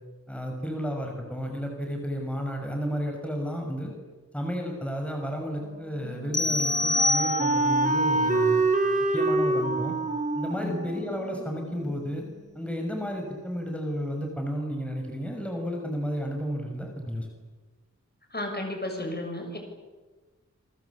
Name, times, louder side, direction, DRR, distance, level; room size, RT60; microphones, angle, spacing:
voice 1, 0.3-3.9 4.3-8.7 9.1-10.0 10.3-12.2 12.6-17.3, equal, 5° left, 2 dB, 6.2 m, -32 dB
Wind instrument woodwind instrument, 5.6-12.5, right 2 dB, 30° right, 3.9 m, -27 dB
sound 1, 6.3-7.9, left 2 dB, 55° left, 1.5 m, -26 dB
voice 2, 10.6-10.9 18.3-19.6, left 1 dB, 35° left, 3 dB, 7.4 m, -33 dB
28.5 x 24.0 x 8.6 m, 1.3 s
wide cardioid pair, 75°, 29 cm